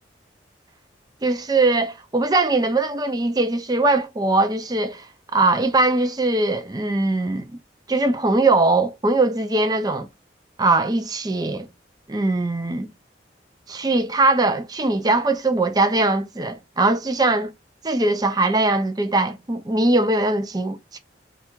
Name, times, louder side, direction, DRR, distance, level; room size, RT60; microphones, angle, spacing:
voice 1, 1.2-5.1 5.3-7.5 7.9-10.1 10.6-11.7 12.1-12.9 13.7-17.5 17.8-21.0, right 2 dB, 20° right, 0.5 m, -21 dB
3.3 x 2.4 x 4.5 m
head